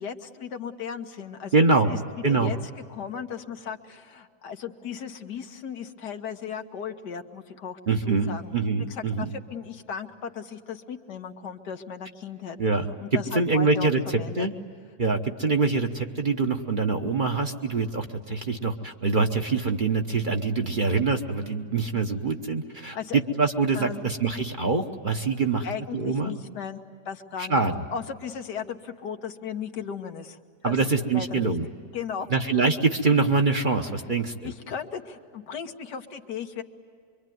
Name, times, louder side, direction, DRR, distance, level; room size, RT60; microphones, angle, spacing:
voice 1, 0.0-1.5 1.9-2.0 2.3-2.6 2.9-7.8 8.1-8.6 8.9-12.6 13.0-13.9 14.2-14.5 22.9-23.2 23.7-24.1 25.6-27.6 27.9-30.4 30.6-30.8 31.1-31.5 31.9-32.3 34.4-36.6, left 7 dB, 85° left, 5 dB, 1.9 m, -36 dB
voice 2, 1.5-1.9 2.2-2.5 7.9-9.2 12.6-12.9 13.3-14.5 15.0-25.7 25.9-26.3 27.4-27.8 30.6-31.7 32.3-34.5, right 4 dB, 35° right, 4 dB, 1.0 m, -24 dB
25.5 x 24.0 x 9.3 m, 2.1 s
omnidirectional pair, 1.7 m